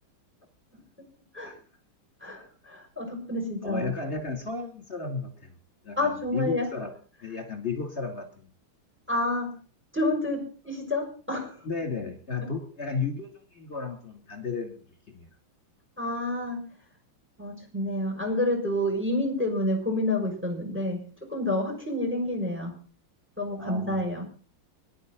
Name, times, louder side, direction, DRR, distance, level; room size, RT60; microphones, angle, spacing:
voice 1, 2.6-3.9 6.0-6.7 9.1-9.5 9.9-11.6 12.4-12.5 16.0-16.6 17.4-21.0 21.3-22.7 23.4-24.2, left 1 dB, 5° right, 4 dB, 6.3 m, -29 dB
voice 2, 3.6-5.5 5.8-6.9 7.2-8.3 11.6-14.8 15.1-15.3 23.6-24.0, left 4 dB, 30° left, 5 dB, 3.1 m, -33 dB
24.5 x 11.5 x 3.9 m, 0.39 s
omnidirectional pair, 2.2 m